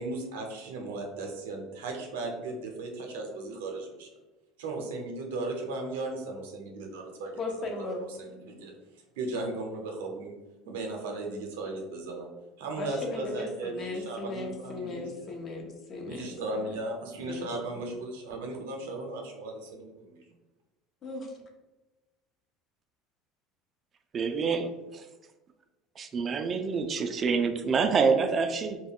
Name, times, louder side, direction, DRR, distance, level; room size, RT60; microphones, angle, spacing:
voice 1, 0.0-4.1 4.6-7.7 8.0-8.8 9.2-10.3 10.7-12.3 12.6-15.3 16.1-20.2, right 2 dB, 90° right, 2 dB, 0.6 m, -36 dB
voice 2, 7.4-8.1 12.8-16.7 17.2-17.5 17.7-18.0 21.0-21.3, left 2 dB, 45° left, 2 dB, 0.7 m, -37 dB
voice 3, 24.1-25.1 26.0-28.8, right 5 dB, 35° right, 7 dB, 0.3 m, -27 dB
2.2 x 2.2 x 3.5 m, 1.1 s
supercardioid pair, 95°, 0 cm